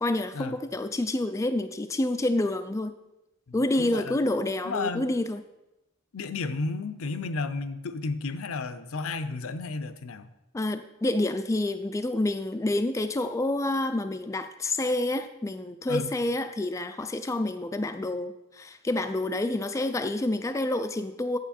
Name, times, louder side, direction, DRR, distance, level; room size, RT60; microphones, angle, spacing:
voice 1, 0.0-2.9 3.5-5.4 10.5-21.4, left 1 dB, 15° left, 9 dB, 0.3 m, -28 dB
voice 2, 3.5-4.2 4.6-5.1 6.1-10.3 15.9-16.1, left 3 dB, 75° left, 12 dB, 0.6 m, -32 dB
8.2 x 7.8 x 4.3 m, 0.93 s
head